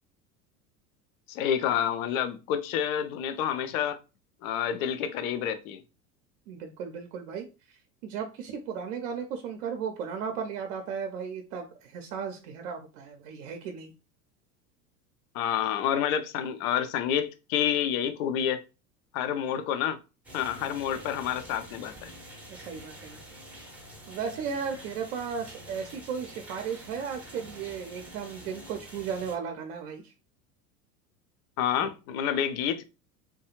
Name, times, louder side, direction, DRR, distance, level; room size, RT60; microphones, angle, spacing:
voice 1, 1.3-4.0 4.4-5.8 15.3-18.6 19.1-20.0 20.3-22.1 31.6-32.8, left 9 dB, 60° left, 0.5 m, -28 dB
voice 2, 6.5-13.9 22.5-23.2 24.1-30.1, right 6 dB, 55° right, 0.6 m, -35 dB
sound 1, 20.2-29.4, equal, 5° right, 0.6 m, -47 dB
2.3 x 2.2 x 2.9 m
hypercardioid pair, 80°, 47 cm